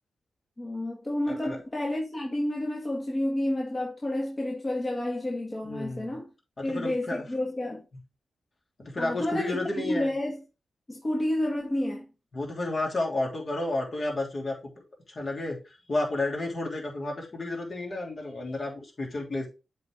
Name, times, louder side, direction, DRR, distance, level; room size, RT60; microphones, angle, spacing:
voice 1, 0.6-6.3 6.6-7.8 9.0-10.4 10.9-12.0, left 1 dB, 30° left, 1.7 m, -30 dB
voice 2, 5.6-6.2 6.6-7.2 8.8-10.1 12.3-14.8 15.1-19.5, left 2 dB, 50° left, 3.1 m, -31 dB
7.7 x 4.4 x 3.5 m
supercardioid pair, 50°, 0 cm